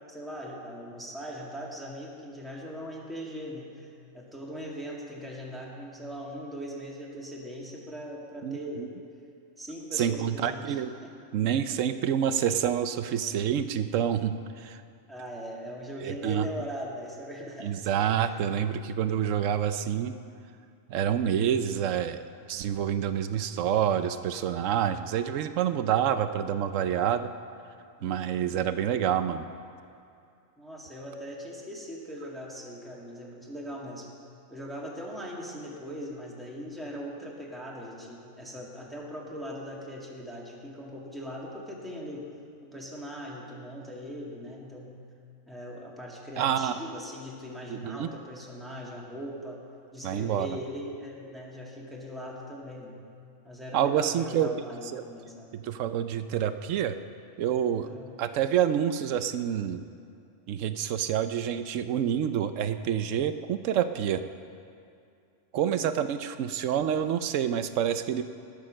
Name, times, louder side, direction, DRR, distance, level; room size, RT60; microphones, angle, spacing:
voice 1, 0.1-8.9 9.6-11.1 11.7-11.8 15.1-17.7 18.2-18.5 28.0-28.2 30.6-34.1 34.5-42.3 42.6-45.0 45.5-49.6 49.9-53.0 53.4-55.5 57.8-58.1 65.5-66.0, equal, ahead, -4 dB, 2.1 m, -40 dB
voice 2, 8.4-8.9 9.9-10.9 11.3-14.8 16.0-16.5 17.6-20.2 20.9-22.2 22.5-27.3 28.0-29.5 46.4-46.7 47.7-48.1 50.0-50.6 53.7-54.5 54.9-55.0 55.5-57.0 57.4-57.9 58.2-59.8 60.5-64.2 65.5-68.2, right 9 dB, 80° right, 11 dB, 1.0 m, -27 dB
19.5 x 6.7 x 6.4 m, 2.5 s
omnidirectional pair, 1.3 m